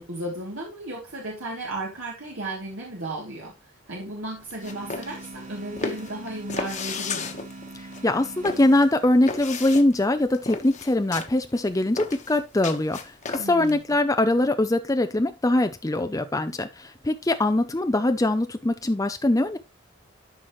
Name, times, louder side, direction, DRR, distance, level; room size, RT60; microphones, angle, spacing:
voice 1, 0.0-7.3 13.4-13.8, right 1 dB, 75° right, 2.9 m, -35 dB
sound 1, 4.4-13.8, left 4 dB, 35° left, 1.3 m, -34 dB
sound 2, 4.6-9.3, right 2 dB, 35° right, 1.1 m, -42 dB
voice 2, 7.7-19.6, left 1 dB, 15° left, 0.5 m, -22 dB
12.5 x 6.0 x 3.1 m
head